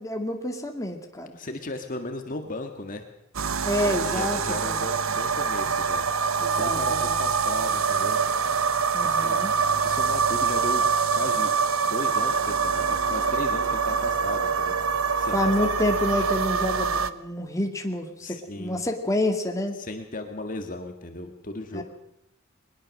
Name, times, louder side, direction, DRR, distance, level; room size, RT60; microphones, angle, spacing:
voice 1, 0.0-1.4 3.6-4.4 4.6-4.8 6.4-7.2 8.9-9.5 15.3-19.7 21.7-21.8, left 1 dB, 15° left, 4 dB, 2.1 m, -28 dB
voice 2, 1.3-3.0 3.8-8.2 9.0-9.4 9.8-10.8 11.1-11.5 11.8-14.8 15.2-15.7 18.2-18.8 19.8-21.8, left 2 dB, 40° left, 5 dB, 1.7 m, -36 dB
sound 1, 3.3-17.1, right 5 dB, 85° right, 1.0 m, -25 dB
21.5 x 20.5 x 6.5 m, 0.83 s
head